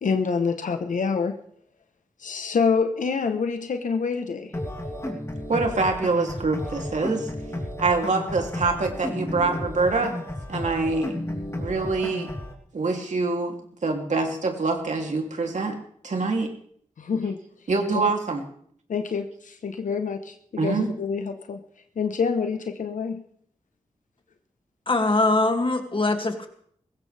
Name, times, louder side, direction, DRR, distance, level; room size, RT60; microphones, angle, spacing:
voice 1, 0.0-1.4 2.2-4.5 17.0-17.4 17.9-18.0 18.9-21.6 22.0-23.2, left 5 dB, 85° left, 7 dB, 1.1 m, -26 dB
sound 1, 4.5-12.5, left 1 dB, 20° left, 3.3 m, -33 dB
voice 2, 5.5-7.3 7.8-10.1 10.5-11.1 11.6-12.3 12.7-15.8 16.0-16.5 17.7-18.4 20.6-20.9, right 3 dB, 70° right, 2 dB, 3.0 m, -25 dB
voice 3, 24.9-26.5, left 2 dB, 40° left, 4 dB, 2.4 m, -22 dB
20.0 x 16.5 x 3.5 m, 0.63 s
cardioid pair, 50°, 13 cm